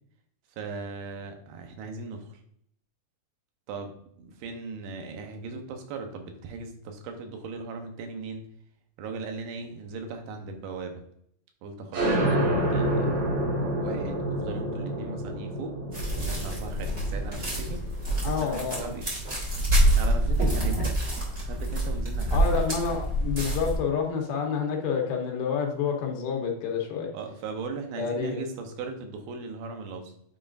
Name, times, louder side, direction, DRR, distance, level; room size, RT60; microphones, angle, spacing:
voice 1, 0.6-2.4 3.7-8.5 9.0-11.0 11.6-13.2 13.8-15.8 16.2-17.8 18.2-19.1 19.9-21.0 21.4-22.6 27.1-30.1, right 4 dB, 80° right, 5 dB, 2.8 m, -38 dB
sound 1, 11.9-19.2, right 1 dB, 60° right, 2.3 m, -29 dB
sound 2, 15.9-23.8, right 1 dB, 35° right, 1.1 m, -26 dB
voice 2, 18.2-18.9 22.3-27.1 28.0-28.4, left 6 dB, 80° left, 1 dB, 2.8 m, -28 dB
9.1 x 4.3 x 2.5 m, 0.69 s
omnidirectional pair, 4.4 m